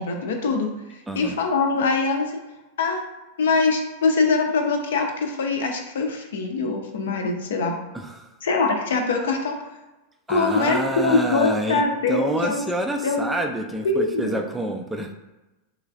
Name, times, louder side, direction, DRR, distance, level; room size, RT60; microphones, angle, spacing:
voice 1, 0.0-2.4 2.8-3.0 3.4-7.7 8.4-9.6 10.3-12.6 13.0-13.3 13.8-14.4, left 4 dB, 60° left, 3 dB, 0.5 m, -23 dB
voice 2, 1.1-1.4 7.9-8.3 10.3-15.1, right 1 dB, 10° right, 3 dB, 0.3 m, -27 dB
3.8 x 3.1 x 2.4 m, 1.0 s
figure-of-eight pair, 90°, 0 cm